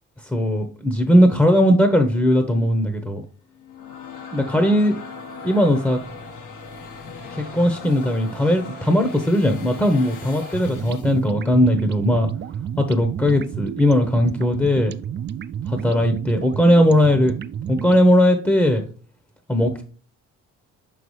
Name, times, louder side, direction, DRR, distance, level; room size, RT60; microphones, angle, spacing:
voice 1, 0.3-3.2 4.3-5.0 5.4-6.0 7.3-12.3 12.8-14.9 15.7-17.3 17.7-18.8 19.5-19.8, equal, 5° left, 5 dB, 0.8 m, -18 dB
sound 1, 3.5-11.2, left 4 dB, 80° left, 1.3 m, -38 dB
sound 2, 10.4-18.0, right 9 dB, 35° right, 0.4 m, -31 dB
5.8 x 5.5 x 3.1 m, 0.40 s
cardioid pair, 90°, 30 cm